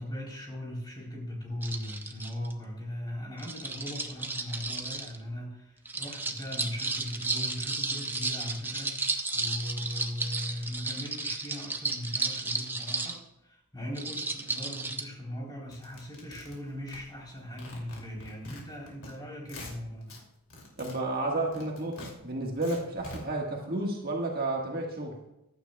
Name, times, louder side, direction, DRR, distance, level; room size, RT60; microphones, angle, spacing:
voice 1, 0.0-20.2, equal, 20° left, -3 dB, 3.7 m, -39 dB
sound 1, 1.6-2.5 3.4-5.2 5.9-13.2 14.0-15.0, right 3 dB, 10° right, 0.6 m, -33 dB
sound 2, 15.7-17.3 17.6-19.1 19.4-20.2 20.5-23.2, left 2 dB, 65° left, 2.7 m, -46 dB
voice 2, 20.8-25.2, right 2 dB, 45° right, -1 dB, 1.6 m, -31 dB
15.0 x 12.0 x 2.3 m, 0.88 s
head